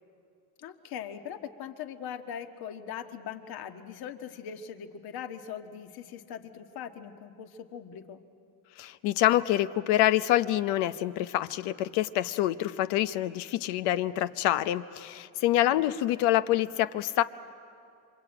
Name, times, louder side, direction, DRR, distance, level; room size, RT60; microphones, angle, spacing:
voice 1, 0.6-8.2 15.6-16.2, left 8 dB, 65° left, 7 dB, 1.7 m, -41 dB
voice 2, 8.8-17.2, left 14 dB, 85° left, 13 dB, 0.9 m, -26 dB
27.0 x 25.0 x 8.8 m, 2.4 s
cardioid pair, 110°, 39 cm